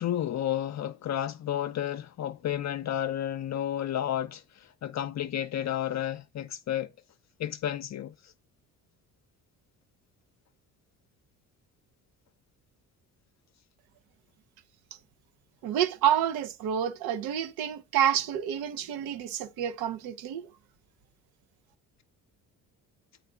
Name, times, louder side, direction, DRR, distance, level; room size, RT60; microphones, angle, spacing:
voice 1, 0.0-6.9 7.4-8.3, left 11 dB, 50° left, 0.6 m, -32 dB
voice 2, 15.6-20.5, right 9 dB, 85° right, 0.8 m, -28 dB
8.0 x 4.9 x 3.7 m
supercardioid pair, 80°, 36 cm